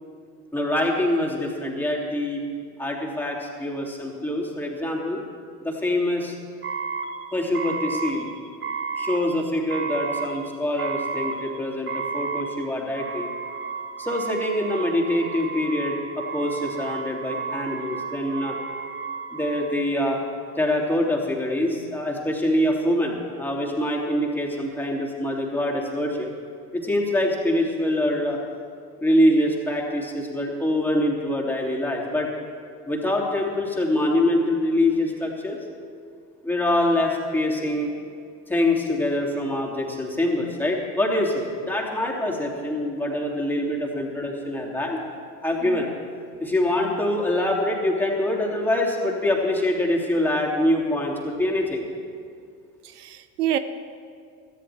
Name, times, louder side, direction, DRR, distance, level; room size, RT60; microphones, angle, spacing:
voice 1, 0.5-2.4 2.8-5.2 5.6-6.3 7.3-8.3 9.0-13.3 14.0-18.6 19.3-20.2 20.6-26.3 26.7-28.4 29.0-32.3 32.9-35.6 36.4-37.9 38.5-45.0 45.4-45.9 46.4-51.8, left 1 dB, 5° left, -2 dB, 2.8 m, -24 dB
sound 1, 6.6-20.2, right 5 dB, 25° right, 1.4 m, -32 dB
voice 2, 52.8-53.6, right 11 dB, 80° right, 12 dB, 0.7 m, -28 dB
17.5 x 13.5 x 3.5 m, 2.2 s
hypercardioid pair, 75°, 45 cm